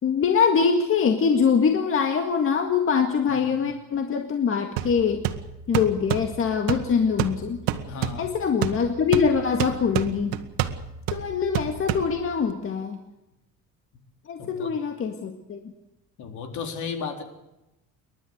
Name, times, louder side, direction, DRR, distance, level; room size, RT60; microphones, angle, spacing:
voice 1, 0.0-5.3 5.7-7.6 8.2-10.4 11.1-13.0 14.3-15.6, left 6 dB, 40° left, 5 dB, 2.1 m, -23 dB
sound 1, 4.8-12.5, right 11 dB, 85° right, 1.6 m, -30 dB
voice 2, 7.8-8.3 14.4-14.7 16.2-17.2, left 5 dB, 60° left, 5 dB, 4.0 m, -34 dB
29.0 x 12.0 x 8.1 m, 0.93 s
cardioid pair, 125°, 33 cm